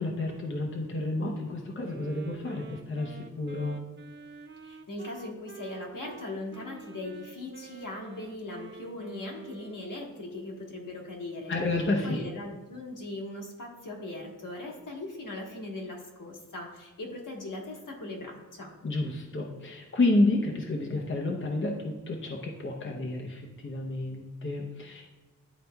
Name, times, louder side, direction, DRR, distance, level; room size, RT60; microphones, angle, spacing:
voice 1, 0.0-3.8 11.5-12.2 18.8-25.0, left 2 dB, 35° left, 0 dB, 0.7 m, -30 dB
Wind instrument woodwind instrument, 1.8-10.0, right 4 dB, 35° right, 0.4 m, -47 dB
voice 2, 4.6-11.6 12.0-18.7, left 2 dB, 70° left, -1 dB, 1.4 m, -39 dB
10.5 x 4.1 x 2.2 m, 1.2 s
wide cardioid pair, 125°, 33 cm